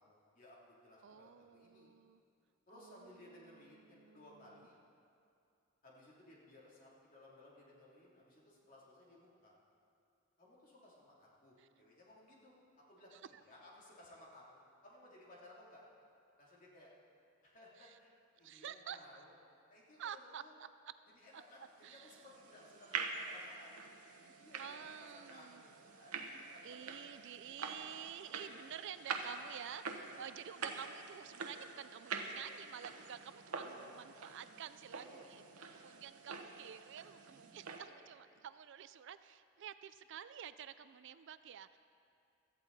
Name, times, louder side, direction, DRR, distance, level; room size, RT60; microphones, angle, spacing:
voice 1, 0.0-1.9 2.7-4.8 5.8-9.6 10.4-12.5 12.9-15.8 16.4-16.9 17.4-19.3 19.7-20.5 21.1-23.8 24.1-26.2 26.5-26.9 30.3-30.6 35.1-36.0, left 1 dB, 40° left, -5 dB, 3.0 m, -60 dB
voice 2, 1.0-2.2 2.7-4.3 11.6-11.7 13.1-13.2 17.8-18.0 18.4-19.0 20.0-20.7 21.8-22.1 24.6-25.6 26.6-35.4 35.7-41.8, right 9 dB, 55° right, 13 dB, 0.3 m, -50 dB
sound 1, 21.8-37.8, right 4 dB, 85° right, 1.1 m, -46 dB
17.0 x 13.5 x 4.1 m, 2.5 s
head